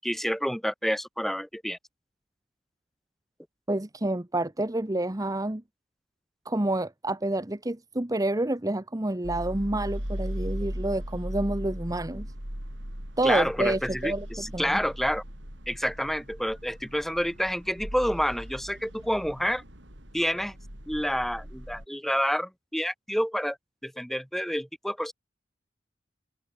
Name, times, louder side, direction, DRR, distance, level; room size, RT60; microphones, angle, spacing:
voice 1, 0.0-1.8 13.2-15.2 15.7-19.6 20.1-20.5 20.9-23.6 23.8-25.1, equal, ahead, 6.5 m, -28 dB
voice 2, 3.7-5.6 6.4-12.3 13.2-14.7, right 1 dB, 20° right, 1.1 m, -28 dB
sound 1, 9.2-21.9, equal, 75° right, 7.3 m, -38 dB
head